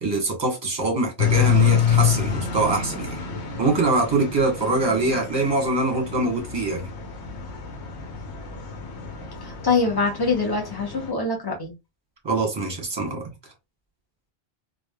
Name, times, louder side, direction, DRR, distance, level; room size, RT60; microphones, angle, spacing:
voice 1, 0.0-3.2 3.6-6.9 12.2-13.2, right 2 dB, 25° right, 1.0 m, -23 dB
sound 1, 1.2-11.1, left 7 dB, 85° left, 1.0 m, -26 dB
voice 2, 9.4-11.7, left 4 dB, 25° left, 0.9 m, -24 dB
3.1 x 2.4 x 2.2 m
omnidirectional pair, 1.1 m